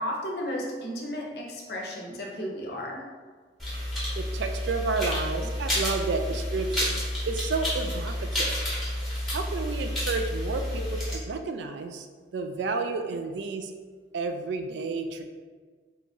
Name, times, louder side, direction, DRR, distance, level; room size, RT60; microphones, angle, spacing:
voice 1, 0.0-3.0 8.4-8.5 10.8-10.9, equal, 60° left, -1 dB, 0.6 m, -34 dB
sound 1, 3.6-11.2, equal, ahead, 0.9 m, -30 dB
voice 2, 4.2-7.0 7.3-8.5 9.3-12.1 12.3-13.7 14.1-15.2, right 4 dB, 70° right, 6 dB, 0.3 m, -31 dB
2.9 x 2.6 x 3.4 m, 1.5 s
head